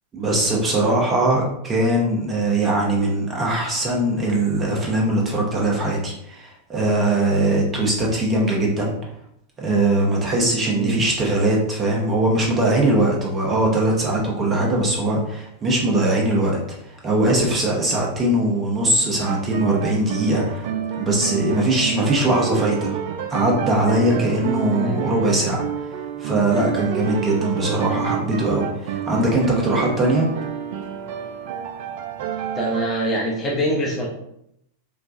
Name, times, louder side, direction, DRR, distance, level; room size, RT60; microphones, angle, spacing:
voice 1, 0.1-8.9 9.6-16.6 16.8-20.7 21.0-23.0 23.3-25.6 26.2-30.3, right 1 dB, 20° right, -2 dB, 0.9 m, -21 dB
sound 1, 19.2-32.9, right 8 dB, 50° right, 0.3 m, -29 dB
voice 2, 24.7-25.0 32.5-34.1, equal, 20° left, -3 dB, 0.7 m, -24 dB
4.5 x 2.2 x 2.5 m, 0.77 s
figure-of-eight pair, 90°, 0 cm